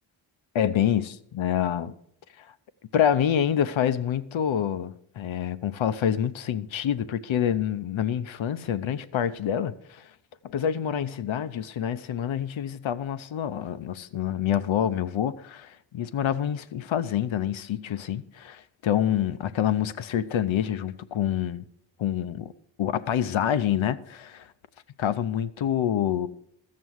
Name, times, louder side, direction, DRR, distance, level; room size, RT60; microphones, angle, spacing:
voice 1, 0.5-1.9 2.4-2.5 2.9-10.1 10.4-21.6 22.0-22.5 22.8-24.5 25.0-26.3, left 9 dB, 80° left, 0.8 m, -27 dB
14.0 x 7.5 x 6.3 m
cardioid pair, 70°, 46 cm